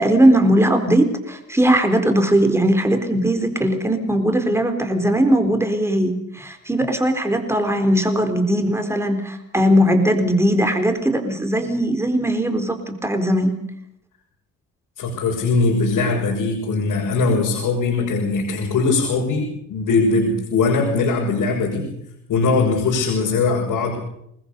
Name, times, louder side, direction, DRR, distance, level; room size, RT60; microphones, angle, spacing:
voice 1, 0.0-13.5, right 1 dB, 10° right, 6 dB, 4.1 m, -19 dB
voice 2, 15.0-21.9 22.3-24.0, left 3 dB, 85° left, -2 dB, 6.7 m, -20 dB
27.5 x 21.0 x 6.9 m, 0.75 s
cardioid pair, 145°, 32 cm